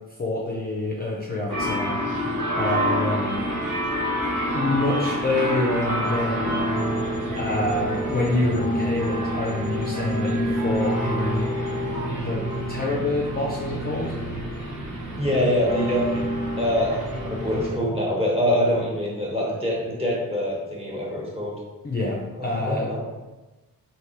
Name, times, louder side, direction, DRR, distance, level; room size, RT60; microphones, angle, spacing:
voice 1, 0.2-2.0 2.6-3.5 4.5-6.6 7.4-11.5 12.2-14.2 21.8-22.9, left 2 dB, 25° left, -3 dB, 0.5 m, -26 dB
sound 1, 1.5-17.7, equal, 60° right, 1.3 m, -27 dB
voice 2, 15.2-16.2 16.6-21.5 22.4-23.0, equal, 15° right, -4 dB, 1.1 m, -24 dB
3.3 x 2.8 x 2.9 m, 1.1 s
wide cardioid pair, 75°, 35 cm